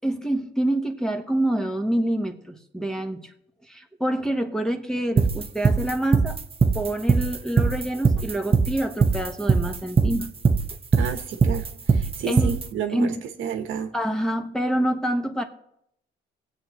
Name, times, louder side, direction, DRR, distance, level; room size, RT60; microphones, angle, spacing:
voice 1, 0.0-3.3 3.7-6.4 6.7-10.3 12.3-12.6 12.9-13.2 13.9-15.4, right 1 dB, 5° left, 4 dB, 1.2 m, -26 dB
sound 1, 5.2-12.7, right 4 dB, 30° right, 0.9 m, -20 dB
voice 2, 10.9-13.1 13.4-13.9, right 7 dB, 80° right, 6 dB, 1.2 m, -30 dB
23.0 x 8.0 x 3.1 m, 0.76 s
cardioid pair, 90°, 20 cm